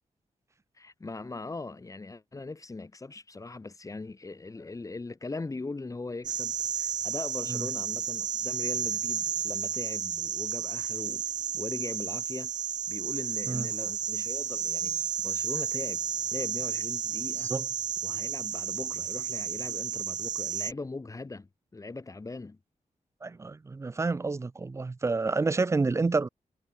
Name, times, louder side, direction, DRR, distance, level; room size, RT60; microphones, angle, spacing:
voice 1, 0.8-11.2 11.5-12.5 12.9-15.0 15.2-16.0 16.3-17.5 18.0-22.6, left 3 dB, 25° left, 3.8 m, -40 dB
sound 1, 6.2-20.7, right 8 dB, 70° right, 0.8 m, -32 dB
voice 2, 23.2-26.3, right 3 dB, 20° right, 0.4 m, -29 dB
wide cardioid pair, 165°, 14 cm